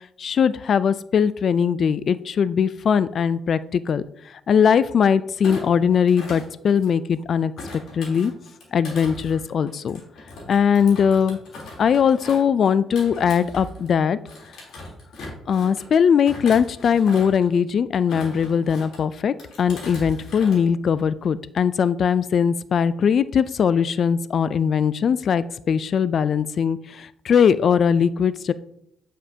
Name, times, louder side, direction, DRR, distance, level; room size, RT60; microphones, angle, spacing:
voice 1, 0.2-4.0 4.5-7.5 7.9-8.3 8.7-10.0 10.5-11.4 11.8-14.2 15.5-28.5, left 7 dB, 55° left, 16 dB, 0.3 m, -20 dB
Thump thud, 5.4-7.1 7.6-13.9 14.3-15.9 16.2-17.5 17.9-19.0 19.4-20.6 20.9-21.2, left 2 dB, 75° left, 3.3 m, -39 dB
8.9 x 7.4 x 2.8 m, 0.75 s
cardioid pair, 90°, 0 cm